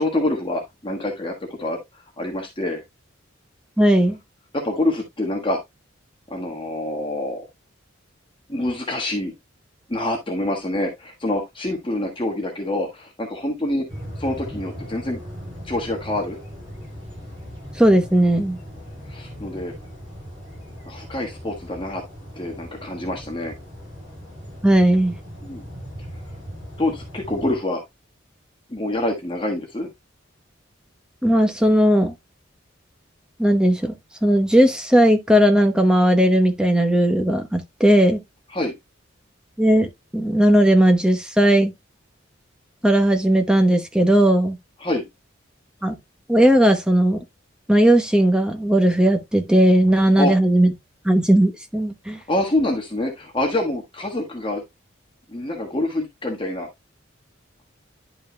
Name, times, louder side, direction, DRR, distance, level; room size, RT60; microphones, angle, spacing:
voice 1, 0.0-1.8 2.2-2.8 4.5-5.6 6.3-7.5 8.5-9.3 9.9-13.9 14.2-15.2 15.6-16.4 19.1-19.7 20.9-22.0 22.4-23.5 25.4-25.6 26.8-27.8 28.7-29.9 38.5-38.7 44.8-45.0 50.2-50.3 52.3-54.6 55.3-56.7, left 1 dB, 25° left, 1.4 m, -26 dB
voice 2, 3.8-4.2 17.8-18.6 24.6-25.2 31.2-32.1 33.4-33.9 34.2-38.2 39.6-39.9 40.1-41.7 42.8-44.6 45.8-45.9 46.3-47.2 47.7-50.7 51.0-52.2, right 1 dB, 5° right, 0.9 m, -17 dB
sound 1, 13.9-27.6, equal, 25° right, 5.8 m, -38 dB
11.0 x 5.5 x 2.2 m
head